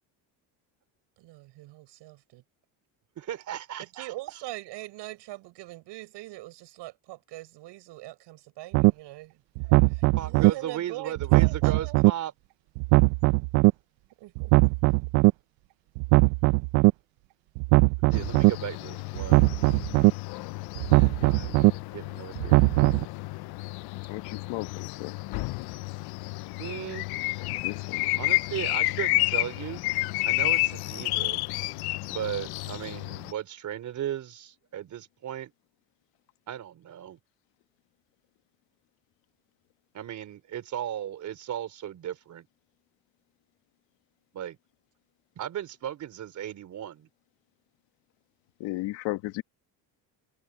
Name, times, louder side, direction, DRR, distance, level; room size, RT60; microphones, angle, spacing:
voice 1, 1.2-2.4 3.8-9.4 9.8-12.0 14.2-14.5 14.8-15.0, right 18 dB, 70° right, 7.2 m, -42 dB
voice 2, 3.2-4.1 9.6-9.8 10.2-12.3 18.0-19.4 20.9-22.6 26.6-27.1 28.2-29.8 30.2-31.4 32.1-35.5 36.5-37.2 39.9-42.5 44.3-44.6 45.4-47.1, right 11 dB, 40° right, 3.9 m, -36 dB
sound 1, 8.7-8.9 9.6-10.5 11.2-12.1 12.8-13.7 14.4-15.3 16.0-16.9 17.6-18.5 19.2-20.1 20.8-21.7 22.4-23.0, right 23 dB, 90° right, 0.7 m, -20 dB
sound 2, 18.1-33.3, left 21 dB, 60° left, 0.6 m, -31 dB
voice 3, 24.1-25.2 27.6-28.3 48.6-49.4, left 19 dB, 80° left, 1.3 m, -35 dB
cardioid pair, 160°, 43 cm